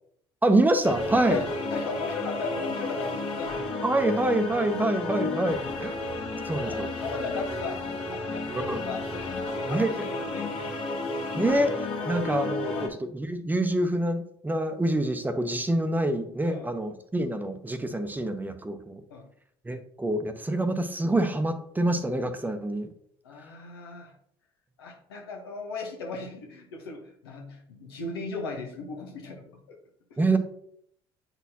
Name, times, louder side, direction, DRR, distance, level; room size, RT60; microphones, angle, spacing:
voice 1, 0.4-1.4 3.8-5.9 6.5-6.9 8.7-8.8 9.7-9.9 11.3-19.0 19.6-22.9 30.2-30.4, right 1 dB, 15° right, 8 dB, 0.8 m, -26 dB
sound 1, 0.8-12.9, left 2 dB, 50° left, 1.6 m, -32 dB
voice 2, 1.7-3.5 6.6-10.8 12.0-12.1 12.7-12.9 16.4-16.7 19.1-19.2 23.2-24.1 24.8-29.8 30.1-30.3, left 3 dB, 85° left, 2 dB, 1.1 m, -37 dB
7.9 x 4.2 x 2.8 m, 0.67 s
hypercardioid pair, 60°, 13 cm